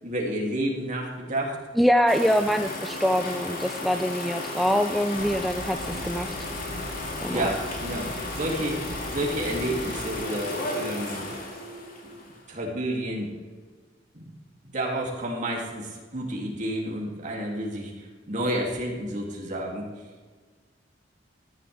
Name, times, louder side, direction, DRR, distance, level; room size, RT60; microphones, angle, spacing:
voice 1, 0.0-1.6 7.3-11.3 12.5-13.3 14.1-14.3 14.6-19.9, right 1 dB, 45° right, -1 dB, 2.7 m, -30 dB
voice 2, 1.8-6.3 7.2-7.5, equal, ahead, 7 dB, 0.3 m, -24 dB
sound 1, 2.1-12.5, left 2 dB, 50° left, 2.4 m, -34 dB
sound 2, 5.1-10.1, equal, 65° right, 3.5 m, -40 dB
15.0 x 11.0 x 3.5 m, 1.5 s
head